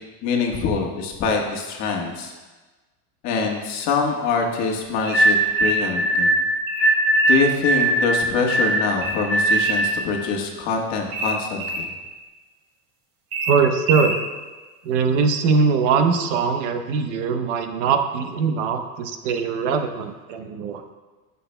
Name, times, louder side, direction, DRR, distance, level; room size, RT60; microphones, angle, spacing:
voice 1, 0.2-2.3 3.2-6.4 6.8-7.0 7.3-11.9, left 5 dB, 40° left, 0 dB, 1.4 m, -24 dB
sound 1, 5.0-5.9 6.7-7.5 9.0-9.9 11.1-11.9 13.3-14.2, right 2 dB, 80° right, 2.8 m, -28 dB
sound 2, 5.1-10.0, right 1 dB, 5° left, 2.1 m, -20 dB
voice 2, 13.4-14.2 14.8-20.8, right 5 dB, 55° right, 6 dB, 0.9 m, -21 dB
19.0 x 6.8 x 2.2 m, 1.3 s
supercardioid pair, 165°, 42 cm